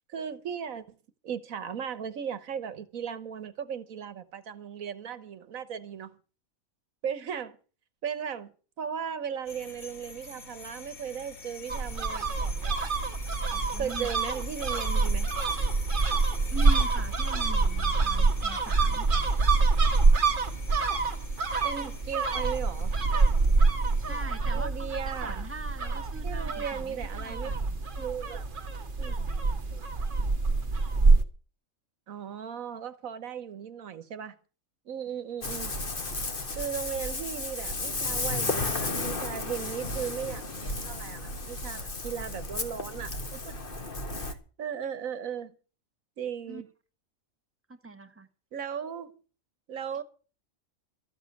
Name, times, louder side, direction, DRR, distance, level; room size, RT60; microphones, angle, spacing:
voice 1, 0.1-1.0 1.2-6.2 7.0-7.6 8.0-12.9 13.8-15.3 21.6-22.9 24.5-25.4 26.2-27.5 28.0-28.4 29.0-29.3 29.7-29.8 32.1-34.3 34.8-35.7 36.6-43.5 44.1-45.6 46.2-46.7 48.5-49.2 49.7-50.0, right 8 dB, 80° right, 1.5 m, -37 dB
sound 1, 9.4-24.2, left 3 dB, 75° left, 2.7 m, -46 dB
sound 2, 11.7-31.2, right 3 dB, 40° right, 1.5 m, -26 dB
voice 2, 13.5-14.1 16.5-19.0 24.0-27.8 46.5-46.6 47.7-48.3, right 3 dB, 10° right, 1.4 m, -42 dB
Ocean, 35.4-44.3, left 2 dB, 40° left, 1.8 m, -33 dB
13.5 x 7.3 x 9.4 m
omnidirectional pair, 1.4 m